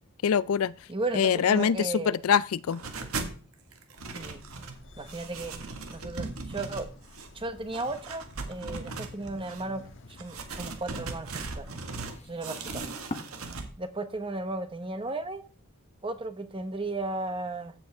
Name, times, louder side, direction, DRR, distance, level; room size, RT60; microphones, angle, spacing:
voice 1, 0.2-0.7 1.1-2.8, left 7 dB, 80° left, 0.4 m, -24 dB
voice 2, 0.9-2.2 4.1-4.4 5.0-5.5 5.9-6.9 7.3-9.8 10.1-11.7 12.2-12.8 13.8-15.4 16.0-17.7, right 2 dB, 25° right, 1.0 m, -35 dB
sound 1, 2.7-3.4 3.7-4.8 5.1-7.3 7.7-9.6 10.2-12.1 12.4-13.7, right 3 dB, 90° right, 1.7 m, -38 dB
sound 2, 4.0-12.2, left 1 dB, 60° left, 1.3 m, -53 dB
sound 3, 7.3-13.2, left 2 dB, 30° left, 1.0 m, -48 dB
15.0 x 7.8 x 3.5 m
head